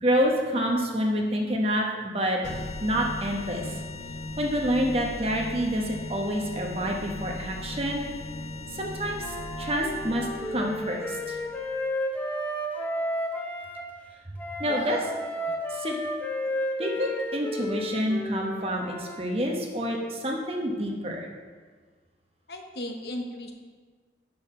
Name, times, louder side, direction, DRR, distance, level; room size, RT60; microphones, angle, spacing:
voice 1, 0.0-1.9 2.1-2.4 2.8-3.7 4.4-8.0 8.7-11.4 14.6-15.1 15.7-16.0 16.8-21.3, equal, 35° right, 1 dB, 1.0 m, -28 dB
sound 1, 2.4-11.8, left 2 dB, 40° left, 0.4 m, -38 dB
Wind instrument woodwind instrument, 9.2-13.8 14.4-19.2, equal, 10° left, 0.7 m, -32 dB
voice 2, 14.7-15.1 22.5-23.5, left 1 dB, 65° left, 4 dB, 0.8 m, -36 dB
6.4 x 5.5 x 5.4 m, 1.5 s
head